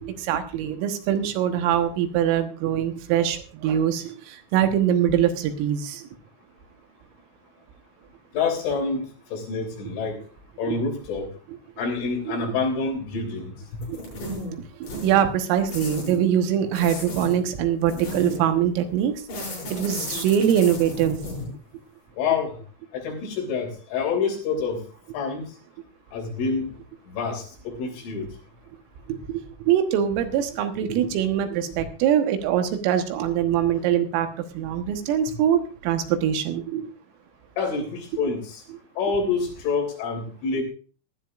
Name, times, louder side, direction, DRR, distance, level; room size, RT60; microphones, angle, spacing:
voice 1, 0.0-6.0 13.9-14.0 14.9-19.1 19.7-21.2 29.1-29.4 29.7-34.3 34.6-36.9, right 9 dB, 85° right, 7 dB, 3.9 m, -23 dB
voice 2, 8.3-10.2 10.6-11.3 11.8-13.8 22.2-22.6 22.9-24.8 25.1-25.6 26.1-26.7 27.1-28.3 37.6-38.6 39.0-40.6, left 4 dB, 75° left, 0 dB, 5.7 m, -27 dB
sound 1, 13.8-14.5 14.8-15.2 15.7-16.2 16.7-17.3 17.9-18.5 19.3-21.5, left 1 dB, 40° left, 7.7 m, -34 dB
19.5 x 12.5 x 2.4 m, 0.37 s
omnidirectional pair, 5.8 m